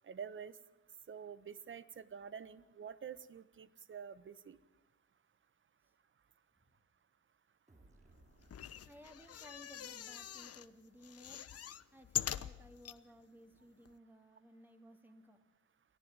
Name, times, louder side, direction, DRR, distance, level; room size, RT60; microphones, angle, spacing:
voice 1, 0.0-0.5 1.1-4.6, right 7 dB, 40° right, 16 dB, 1.3 m, -48 dB
sound 1, 7.7-11.3, right 2 dB, 25° right, 6.0 m, -67 dB
sound 2, 8.4-10.7 11.0-13.0 13.6-13.7 13.9-14.0, left 10 dB, 50° left, 1.0 m, -43 dB
voice 2, 8.8-11.5 11.9-15.4, equal, 5° right, 5 dB, 2.8 m, -58 dB
29.0 x 11.0 x 9.0 m, 1.2 s
cardioid pair, 90°, 30 cm